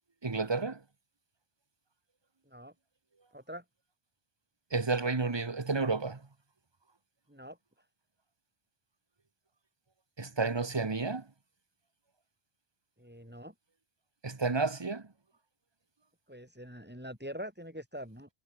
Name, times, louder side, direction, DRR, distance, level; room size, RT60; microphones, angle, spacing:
voice 1, 0.2-0.8 4.7-6.2 10.2-11.2 14.2-15.0, right 3 dB, 25° right, 1.1 m, -31 dB
voice 2, 3.3-3.6 7.3-7.6 13.0-13.5 16.3-18.3, equal, 10° right, 6.7 m, -44 dB
omnidirectional pair, 1.0 m